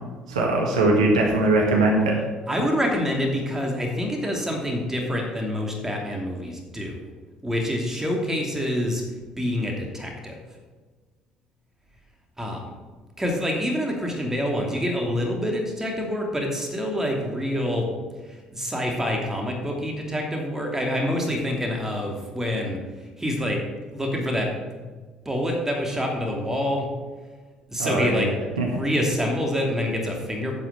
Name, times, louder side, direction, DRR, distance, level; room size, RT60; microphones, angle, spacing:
voice 1, 0.3-2.2 27.8-28.3 28.6-28.8, right 2 dB, 80° right, -1 dB, 1.8 m, -21 dB
voice 2, 2.5-6.9 7.4-9.0 9.4-10.4 12.4-12.7 13.2-17.9 18.3-22.8 23.2-24.5 24.8-24.9 25.2-26.9 27.7-28.3 28.5-30.6, equal, 10° right, 1 dB, 2.9 m, -26 dB
10.5 x 5.7 x 6.9 m, 1.3 s
figure-of-eight pair, 50°, 3 cm